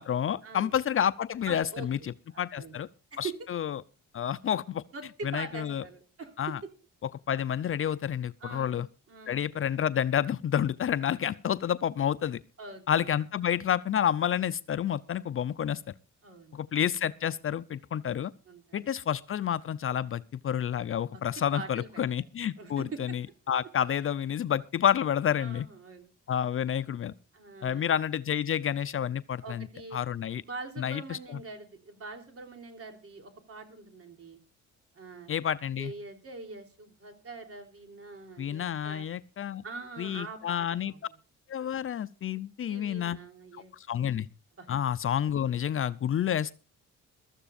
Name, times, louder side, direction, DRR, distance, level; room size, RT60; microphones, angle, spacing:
voice 1, 0.0-2.9 3.2-3.8 4.1-4.8 5.2-5.8 6.4-6.6 7.3-8.9 9.3-12.4 12.9-15.8 16.5-18.3 18.7-25.7 26.3-27.1 27.6-29.7 29.9-30.4 30.8-31.4 35.3-35.9 38.4-39.6 40.0-40.9 41.5-43.2 43.7-44.3 44.7-46.5, left 9 dB, 45° left, 0.6 m, -29 dB
voice 2, 1.4-2.8 3.1-3.4 4.9-6.3 8.4-8.8 9.1-9.4 12.6-13.1 16.2-16.6 18.5-18.9 21.1-21.2 21.5-22.3 22.6-23.2 25.4-26.1 27.3-27.9 29.4-30.0 30.4-34.4 34.9-35.3 35.8-39.1 39.6-41.2 42.7-43.7 44.6-44.7, right 4 dB, 50° right, 3.5 m, -44 dB
22.0 x 13.5 x 2.5 m
cardioid pair, 90°, 30 cm